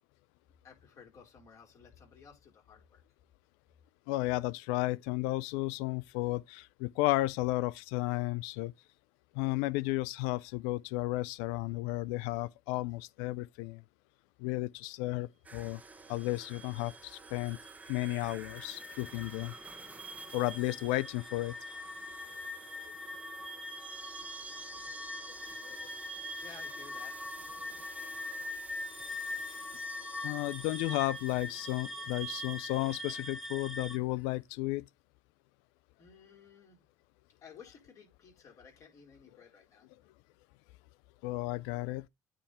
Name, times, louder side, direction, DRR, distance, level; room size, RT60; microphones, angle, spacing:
voice 1, 0.6-3.0 22.4-22.6 26.1-27.6 36.0-36.8 37.4-39.9, left 6 dB, 45° left, 4.4 m, -56 dB
voice 2, 4.1-8.7 9.3-13.8 14.4-15.8 16.1-17.6 17.9-19.5 20.3-21.5 25.6-25.8 30.2-34.8 41.2-42.0, left 19 dB, 80° left, 0.4 m, -33 dB
sound 1, 15.4-34.0 34.2-34.3, right 3 dB, 20° right, 1.3 m, -53 dB
sound 2, 16.1-34.0, left 1 dB, 5° right, 1.4 m, -43 dB
9.0 x 3.4 x 4.3 m
supercardioid pair, 80°, 7 cm